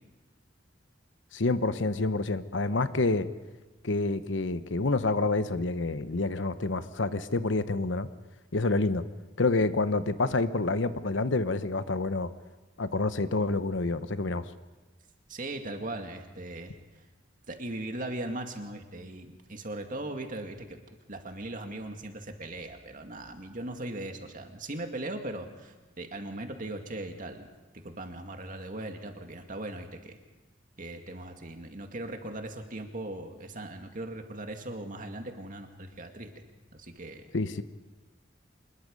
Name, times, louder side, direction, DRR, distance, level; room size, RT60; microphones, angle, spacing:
voice 1, 1.3-3.3 3.8-8.1 8.5-9.0 9.4-12.3 12.8-14.4 37.3-37.6, left 3 dB, 75° left, 12 dB, 0.9 m, -28 dB
voice 2, 15.3-16.8 17.5-20.8 21.1-27.5 27.7-30.2 30.8-36.3 36.7-37.2, right 1 dB, 45° right, 5 dB, 2.2 m, -39 dB
25.5 x 21.0 x 5.4 m, 1.2 s
head